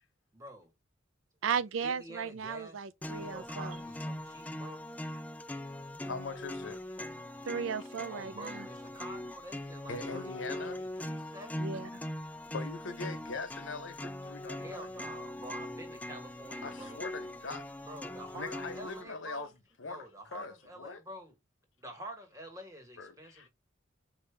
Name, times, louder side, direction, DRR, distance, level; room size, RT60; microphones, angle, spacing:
voice 1, 0.3-0.7 1.8-2.9 3.1-4.9 8.1-11.8 14.5-17.0 17.8-19.5 19.8-21.4 21.8-23.5, right 1 dB, 15° right, 1.5 m, -48 dB
voice 2, 1.4-3.8 7.5-8.6 11.6-11.9, right 6 dB, 75° right, 0.4 m, -35 dB
sound 1, 3.0-19.0, left 1 dB, 5° left, 0.3 m, -41 dB
voice 3, 6.0-6.8 9.9-10.8 12.5-14.9 16.6-17.7 18.3-19.5 19.8-20.0 20.3-21.0 23.0-23.5, left 4 dB, 70° left, 0.9 m, -42 dB
4.7 x 2.8 x 3.3 m
head